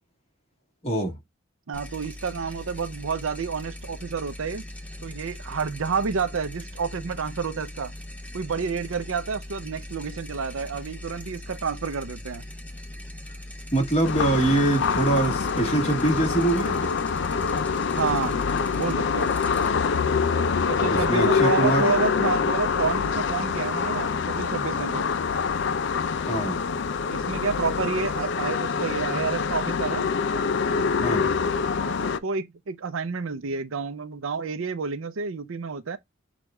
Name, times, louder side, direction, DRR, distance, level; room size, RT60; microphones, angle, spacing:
voice 1, 0.8-1.2 13.7-16.9 20.9-21.9 26.3-26.6 31.0-31.3, right 2 dB, 30° left, 1.7 m, -24 dB
sound 1, 1.7-21.0, left 1 dB, 5° left, 0.7 m, -40 dB
voice 2, 1.7-4.6 5.0-7.9 8.3-12.4 18.0-18.4 18.7-19.3 20.7-25.1 27.1-30.1 31.8-36.0, right 5 dB, 75° right, 0.6 m, -29 dB
sound 2, 14.0-32.2, left 5 dB, 60° left, 0.4 m, -25 dB
6.3 x 2.4 x 3.2 m
head